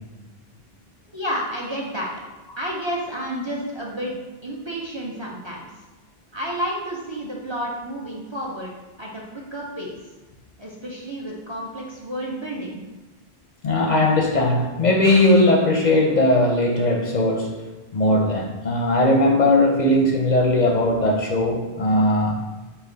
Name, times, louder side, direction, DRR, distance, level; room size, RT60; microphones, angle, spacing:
voice 1, 1.1-2.1 2.6-4.1 4.4-5.7 6.3-8.7 9.0-10.0 10.6-12.8, equal, 35° right, -3 dB, 0.5 m, -30 dB
voice 2, 13.6-17.6 17.9-22.4, left 1 dB, 55° left, 0 dB, 0.6 m, -19 dB
5.6 x 2.3 x 3.8 m, 1.2 s
omnidirectional pair, 1.0 m